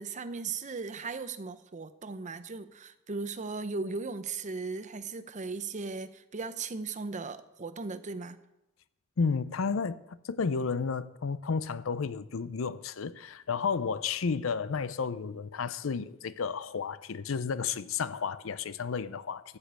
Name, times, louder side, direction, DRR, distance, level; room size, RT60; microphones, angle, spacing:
voice 1, 0.0-8.4, right 4 dB, 35° right, 0.7 m, -37 dB
voice 2, 9.2-19.6, left 5 dB, 80° left, 0.6 m, -32 dB
14.5 x 5.2 x 8.1 m
head